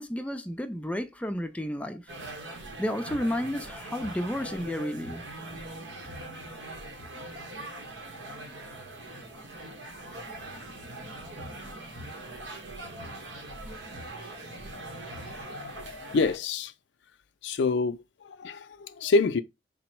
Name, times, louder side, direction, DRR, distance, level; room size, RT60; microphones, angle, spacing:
voice 1, 0.0-2.0 2.8-5.2, equal, 5° left, 0.4 m, -32 dB
sound 1, 2.1-16.4, right 1 dB, 85° right, 0.9 m, -41 dB
voice 2, 15.3-16.7 17.4-19.4, left 3 dB, 75° left, 0.4 m, -28 dB
3.9 x 2.0 x 4.4 m
head